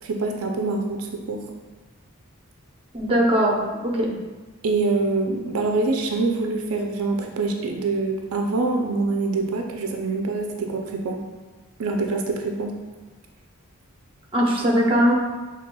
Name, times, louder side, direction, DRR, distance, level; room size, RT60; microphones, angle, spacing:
voice 1, 0.0-1.4 4.6-11.2 11.8-12.7, right 3 dB, 80° right, 2 dB, 0.5 m, -25 dB
voice 2, 2.9-3.6 3.8-4.1 14.3-15.1, equal, 25° right, -2 dB, 0.8 m, -20 dB
6.5 x 3.4 x 2.2 m, 1.3 s
head